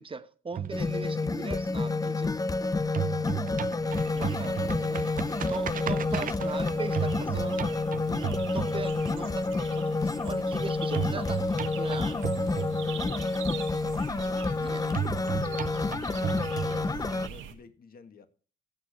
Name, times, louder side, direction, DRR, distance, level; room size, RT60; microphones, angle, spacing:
voice 1, 0.0-2.3 4.1-5.1 5.5-11.4 11.7-12.2 14.6-14.8, right 5 dB, 25° right, 1.1 m, -39 dB
sound 1, 0.5-2.5 2.8-9.3 10.9-13.3 14.9-17.3, right 10 dB, 45° right, 0.6 m, -35 dB
sound 2, 0.7-17.3, left 3 dB, 20° left, 0.6 m, -29 dB
sound 3, 3.9-17.5, right 7 dB, 85° right, 1.8 m, -44 dB
voice 2, 4.5-6.1 12.3-13.7 14.3-18.3, left 6 dB, 50° left, 1.8 m, -50 dB
15.5 x 8.4 x 3.1 m
cardioid pair, 90°, 20 cm